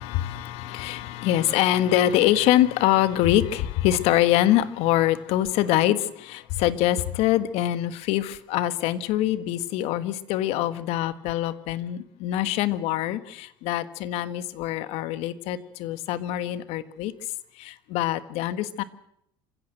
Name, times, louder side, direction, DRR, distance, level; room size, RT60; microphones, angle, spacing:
voice 1, 0.0-18.8, left 13 dB, 70° left, 13 dB, 1.6 m, -24 dB
26.5 x 16.0 x 7.8 m, 0.74 s
supercardioid pair, 95°, 11 cm